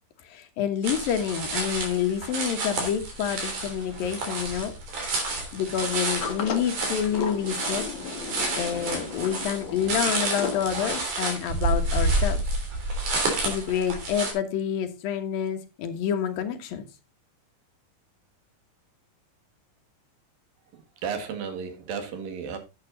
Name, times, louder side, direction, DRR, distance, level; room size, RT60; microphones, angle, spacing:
voice 1, 0.2-4.7 5.5-7.9 8.6-12.4 13.4-16.9, left 8 dB, 90° left, 3.1 m, -28 dB
sound 1, 0.8-14.3, right 2 dB, 65° right, 4.6 m, -29 dB
Sliding door, 5.8-11.2, left 5 dB, 45° left, 2.0 m, -36 dB
voice 2, 20.7-22.6, right 6 dB, 85° right, 3.6 m, -34 dB
10.5 x 7.9 x 3.9 m
omnidirectional pair, 3.9 m